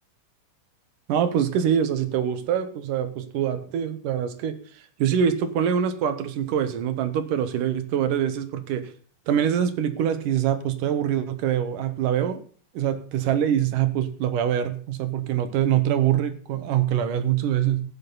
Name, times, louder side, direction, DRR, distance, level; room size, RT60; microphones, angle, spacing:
voice 1, 1.1-4.6 5.0-8.9 9.3-12.4 12.7-17.8, right 9 dB, 75° right, 10 dB, 2.8 m, -24 dB
14.5 x 9.9 x 4.0 m, 0.42 s
omnidirectional pair, 3.8 m